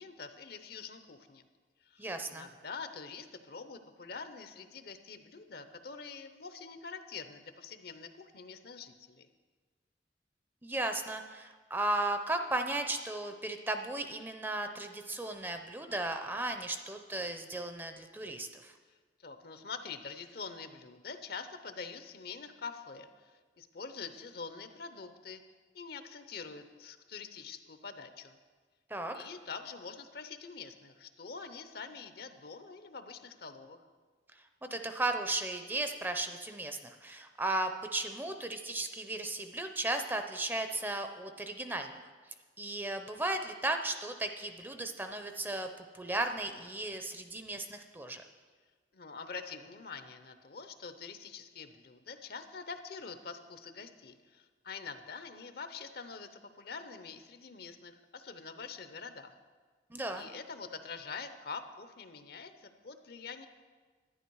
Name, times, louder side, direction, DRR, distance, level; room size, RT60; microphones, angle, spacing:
voice 1, 0.0-1.4 1.8-9.3 19.2-25.4 25.7-28.4 29.1-33.8 48.9-59.4 60.1-63.5, left 5 dB, 60° left, 9 dB, 0.7 m, -45 dB
voice 2, 2.0-2.5 10.6-18.7 28.9-29.2 34.6-42.0 42.6-45.7 45.9-48.2 59.9-60.3, right 2 dB, 10° right, 6 dB, 0.5 m, -35 dB
11.0 x 10.0 x 4.7 m, 1.5 s
head